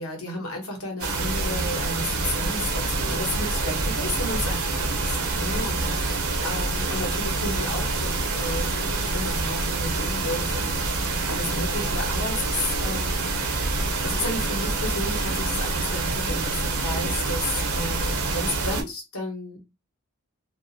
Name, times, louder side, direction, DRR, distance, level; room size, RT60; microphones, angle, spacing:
voice 1, 0.0-5.0 5.4-13.3 14.0-17.4 17.7-19.6, left 1 dB, 75° left, 2 dB, 1.0 m, -33 dB
sound 1, 1.0-18.8, right 3 dB, 75° right, 0.7 m, -26 dB
2.5 x 2.4 x 2.6 m, 0.24 s
head